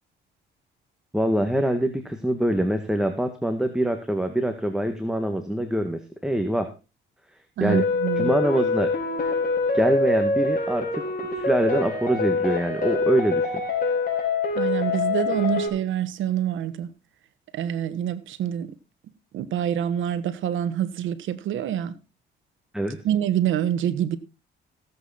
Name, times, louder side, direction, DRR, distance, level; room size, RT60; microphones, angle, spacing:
voice 1, 1.1-6.7 7.6-7.8 8.2-8.9 9.7-11.0 11.4-13.5 22.7-23.0, right 1 dB, 5° right, 1.7 m, -24 dB
voice 2, 7.6-8.3 14.5-16.9 17.5-18.7 19.3-21.9 23.0-24.2, right 10 dB, 80° right, 1.3 m, -26 dB
sound 1, 7.7-15.7, left 3 dB, 45° left, 5.0 m, -25 dB
16.0 x 8.2 x 4.2 m
cardioid pair, 90°, 20 cm